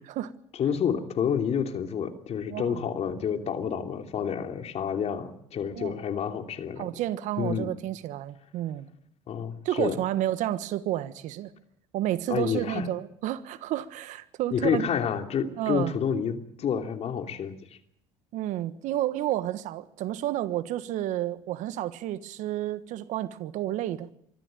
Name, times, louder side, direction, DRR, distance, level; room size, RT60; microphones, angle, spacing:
voice 1, 0.6-6.9 7.4-7.7 9.3-10.0 12.3-12.9 14.5-17.6, left 7 dB, 55° left, 3.0 m, -29 dB
voice 2, 2.5-2.8 5.7-5.9 6.8-8.9 9.6-11.5 11.9-14.9 15.6-16.0 18.3-24.1, right 13 dB, 70° right, 1.4 m, -30 dB
25.0 x 13.5 x 9.1 m
hypercardioid pair, 70°, 13 cm